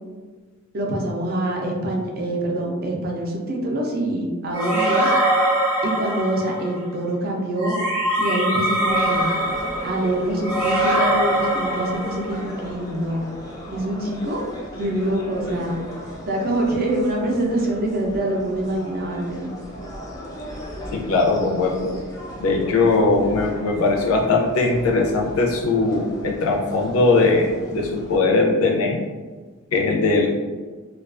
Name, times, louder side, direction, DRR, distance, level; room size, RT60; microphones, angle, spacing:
voice 1, 0.7-5.1 5.8-7.8 8.2-9.3 9.8-13.2 13.7-14.4 14.8-15.7 16.3-19.5, right 1 dB, 45° right, -1 dB, 0.4 m, -25 dB
sound 1, 4.5-6.7 7.6-12.5, right 1 dB, 10° right, 0.7 m, -22 dB
sound 2, 8.8-28.2, equal, 15° left, 0.4 m, -37 dB
voice 2, 20.9-21.9 22.4-29.0 29.7-30.3, left 3 dB, 85° left, 0 dB, 0.5 m, -20 dB
2.3 x 2.3 x 2.4 m, 1.4 s
head